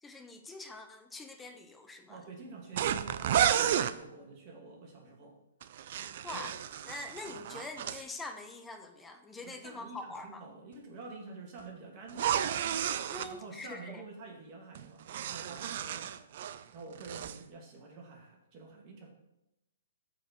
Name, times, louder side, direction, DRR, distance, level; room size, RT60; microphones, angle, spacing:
voice 1, 0.0-2.2 6.0-6.6 6.8-10.4 13.1-14.0, left 2 dB, 10° left, 7 dB, 0.9 m, -44 dB
voice 2, 2.1-5.4 6.3-6.5 9.4-12.3 13.2-16.1 16.7-19.1, right 3 dB, 35° right, 0 dB, 2.5 m, -48 dB
sound 1, 2.8-4.0 5.6-8.0 12.1-13.3 14.7-16.6 16.9-17.4, right 10 dB, 55° right, 0.5 m, -32 dB
13.0 x 4.6 x 4.6 m, 0.91 s
hypercardioid pair, 130°, 0 cm